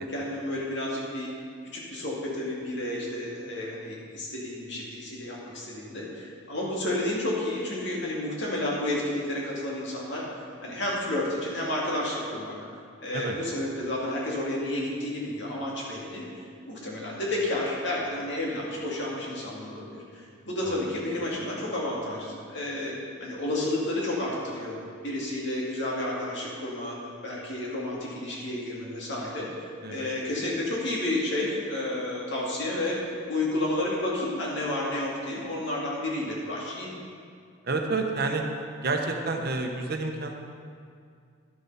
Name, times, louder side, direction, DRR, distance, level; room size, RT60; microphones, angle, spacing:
voice 1, 0.1-1.3 1.7-10.2 10.6-12.5 13.0-16.3 16.7-24.8 25.0-27.0 27.2-33.0 33.3-36.9, left 1 dB, 60° left, -4 dB, 2.5 m, -31 dB
voice 2, 37.6-38.5 38.8-40.3, right 3 dB, 50° right, 3 dB, 1.0 m, -29 dB
11.0 x 7.5 x 5.6 m, 2.3 s
head